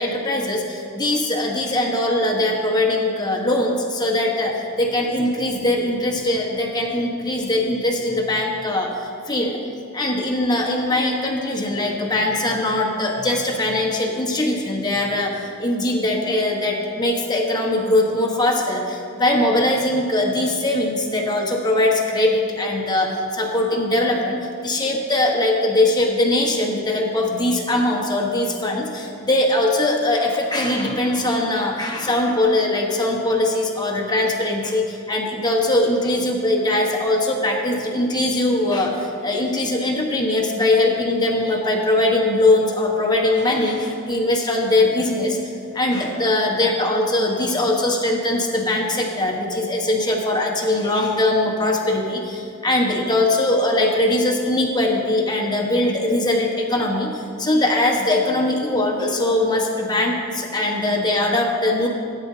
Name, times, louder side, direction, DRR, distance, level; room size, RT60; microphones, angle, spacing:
voice 1, 0.0-9.6 9.9-61.9, left 1 dB, 20° left, 0 dB, 1.2 m, -21 dB
17.5 x 9.2 x 2.8 m, 2.6 s
head